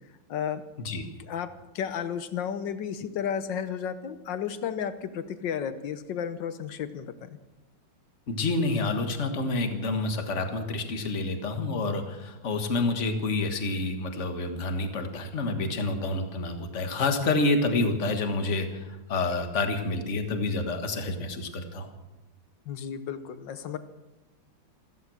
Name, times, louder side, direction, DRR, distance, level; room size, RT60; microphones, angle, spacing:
voice 1, 0.3-0.6 1.3-1.5 1.7-7.3 22.7-23.8, left 8 dB, 70° left, 12 dB, 1.6 m, -33 dB
voice 2, 8.3-21.9, left 2 dB, 40° left, 6 dB, 1.8 m, -28 dB
15.0 x 15.0 x 6.3 m, 1.0 s
omnidirectional pair, 2.1 m